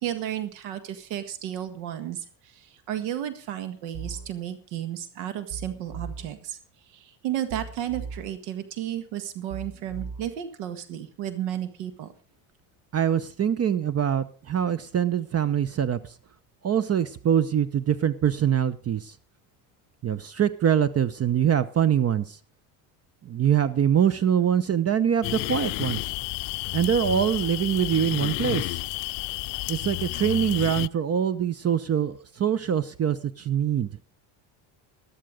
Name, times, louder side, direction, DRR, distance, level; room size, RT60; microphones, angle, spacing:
voice 1, 0.0-6.6 6.9-12.1, right 11 dB, 85° right, 11 dB, 1.8 m, -33 dB
sound 1, 3.9-4.3 5.5-6.3 7.5-8.3 9.5-10.3, right 5 dB, 60° right, 4.4 m, -38 dB
voice 2, 12.9-16.1 16.6-19.1 20.0-22.4 23.2-26.1 26.7-28.8 29.7-33.9, right 9 dB, 30° right, 16 dB, 0.8 m, -24 dB
sound 2, 25.2-30.9, left 26 dB, 70° left, 0.5 m, -31 dB
13.0 x 12.0 x 5.1 m, 0.38 s
supercardioid pair, 105°, 45 cm